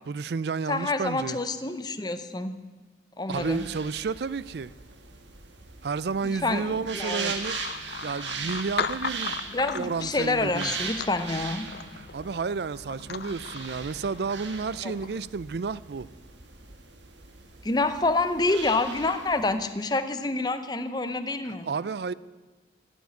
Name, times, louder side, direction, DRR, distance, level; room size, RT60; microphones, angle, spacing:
voice 1, 0.1-1.4 3.3-4.7 5.8-7.6 8.0-9.4 9.7-10.7 12.0-16.1 21.6-22.1, right 5 dB, 65° right, 0.4 m, -31 dB
voice 2, 0.7-2.5 3.2-3.7 6.2-7.3 9.5-11.7 14.8-14.9 17.6-21.7, left 2 dB, 20° left, 0.7 m, -27 dB
sound 1, 3.3-19.5, right 5 dB, 85° right, 1.6 m, -39 dB
sound 2, 7.4-15.3, left 6 dB, 60° left, 0.5 m, -38 dB
14.5 x 7.2 x 9.5 m
head